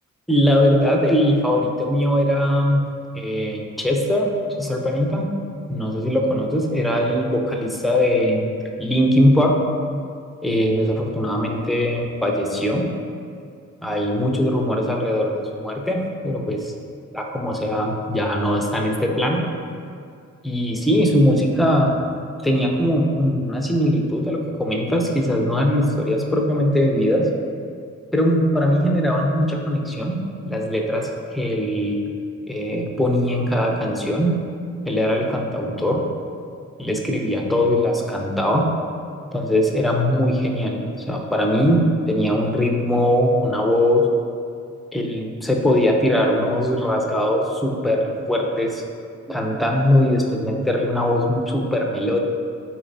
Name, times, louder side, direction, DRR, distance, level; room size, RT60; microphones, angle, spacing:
voice 1, 0.3-2.9 3.2-4.3 4.6-5.3 5.7-8.4 8.8-9.6 10.4-12.9 13.8-16.7 17.1-19.4 20.4-21.9 22.4-27.3 28.1-30.2 30.4-32.0 32.5-34.4 34.8-36.0 36.8-38.7 39.3-44.1 44.9-48.8 49.3-52.2, equal, ahead, 0 dB, 0.4 m, -20 dB
4.1 x 3.1 x 2.6 m, 2.3 s
cardioid pair, 90°, 30 cm